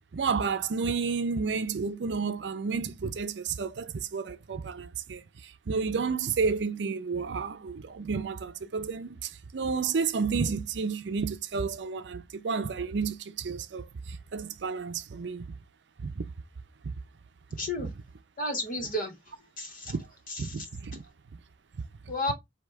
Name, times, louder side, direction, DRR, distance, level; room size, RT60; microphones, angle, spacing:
voice 1, 0.1-15.5 16.0-16.3 17.8-17.9 19.9-20.0 20.4-21.0, right 5 dB, 70° right, 0.5 m, -31 dB
voice 2, 17.6-17.9 18.4-19.1 19.6-19.9 20.3-20.6 22.1-22.3, left 1 dB, 50° left, 1.5 m, -32 dB
4.8 x 2.8 x 3.2 m
head